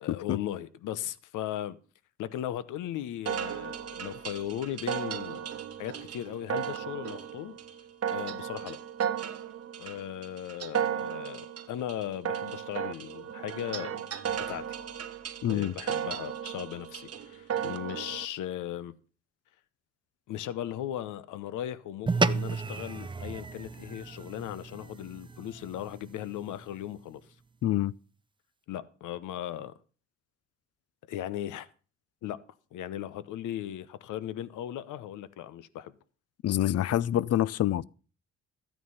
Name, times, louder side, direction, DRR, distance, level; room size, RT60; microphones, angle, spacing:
voice 1, 0.0-1.8 2.2-5.5 5.8-7.6 8.1-8.8 9.8-14.0 14.5-14.8 15.5-18.9 20.3-27.2 28.7-29.7 31.1-31.7 32.2-32.4 32.7-35.9, left 11 dB, 85° left, 0.9 m, -37 dB
sound 1, 3.3-18.3, right 8 dB, 50° right, 1.1 m, -35 dB
voice 2, 15.4-15.7 27.6-27.9 36.4-37.8, left 12 dB, 55° left, 0.5 m, -26 dB
sound 2, 22.1-26.7, right 4 dB, 15° right, 0.6 m, -33 dB
13.0 x 9.2 x 5.5 m
cardioid pair, 90°, 30 cm